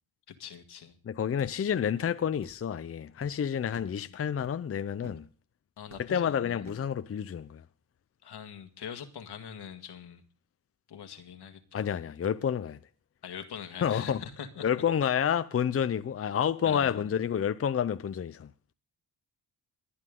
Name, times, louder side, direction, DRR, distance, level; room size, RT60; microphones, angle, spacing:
voice 1, 0.3-1.0 3.7-4.1 5.8-6.7 8.2-10.2 10.9-11.9 13.2-14.7 16.6-17.1, left 8 dB, 80° left, 1.8 m, -43 dB
voice 2, 1.1-5.3 6.0-7.6 11.7-12.8 13.8-14.2 14.6-18.5, left 8 dB, 35° left, 0.6 m, -29 dB
sound 1, 1.4-1.6 2.4-2.6 3.2-3.4 3.7-4.0 4.4-4.6 5.0-5.3 5.9-6.2 6.6-6.9, right 3 dB, 55° right, 3.0 m, -51 dB
22.5 x 9.7 x 3.8 m
cardioid pair, 115°, 39 cm